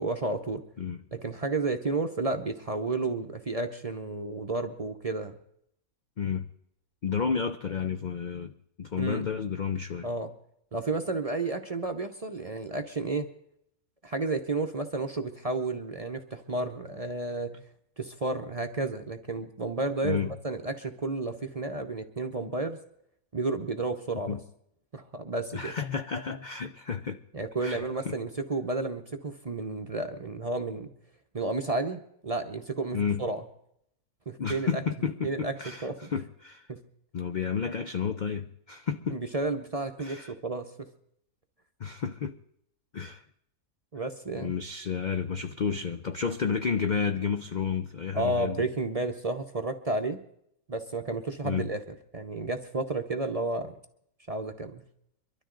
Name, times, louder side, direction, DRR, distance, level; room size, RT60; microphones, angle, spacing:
voice 1, 0.0-0.6 1.1-5.4 9.0-9.3 10.0-10.3 10.7-13.3 14.0-17.6 18.0-22.8 23.3-24.4 24.9-25.7 27.3-30.9 31.3-33.4 34.3-34.8 35.2-36.1 36.7-36.8 39.1-40.9 43.9-44.5 48.1-50.2 50.7-51.8 52.1-53.8 54.3-54.9, right 2 dB, 35° right, 0.6 m, -32 dB
voice 2, 6.2-6.5 7.0-10.1 20.0-20.3 24.3-24.4 25.5-27.2 27.6-27.8 32.9-33.2 34.4-36.6 37.1-39.2 40.0-40.3 41.8-42.4 42.9-43.2 44.4-48.6 51.4-51.7, left 6 dB, 70° left, 0.4 m, -31 dB
23.0 x 12.5 x 3.8 m
omnidirectional pair, 1.6 m